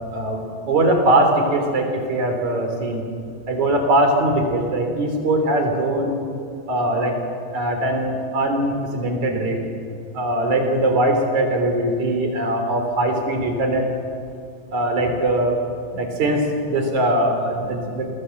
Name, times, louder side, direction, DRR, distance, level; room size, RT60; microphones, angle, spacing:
voice 1, 0.1-3.0 3.5-6.2 6.7-7.2 7.5-9.6 10.1-13.8 14.7-15.6 15.9-18.1, right 1 dB, 40° right, 4 dB, 4.3 m, -21 dB
29.0 x 21.5 x 7.9 m, 2.3 s
omnidirectional pair, 5.4 m